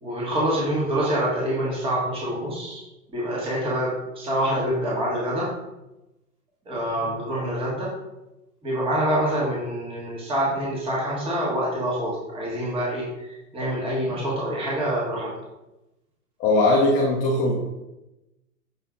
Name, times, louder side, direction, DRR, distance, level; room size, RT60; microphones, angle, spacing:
voice 1, 0.0-2.8 3.1-5.5 6.6-7.9 8.6-15.3, right 1 dB, 10° right, -5 dB, 1.6 m, -26 dB
voice 2, 16.4-17.6, left 2 dB, 20° left, -3 dB, 0.6 m, -20 dB
6.7 x 4.1 x 3.7 m, 0.97 s
hypercardioid pair, 130°, 46 cm